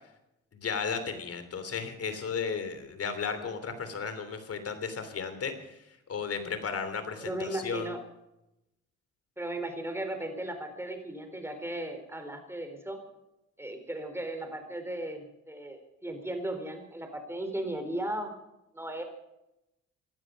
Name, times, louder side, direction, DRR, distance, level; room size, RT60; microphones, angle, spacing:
voice 1, 0.5-5.7 6.1-7.9, left 5 dB, 50° left, 9 dB, 3.3 m, -34 dB
voice 2, 7.2-8.0 9.4-13.0 13.6-18.3 18.7-19.0, right 1 dB, 10° right, 6 dB, 4.1 m, -36 dB
18.5 x 12.5 x 5.3 m, 0.89 s
cardioid pair, 90°, 30 cm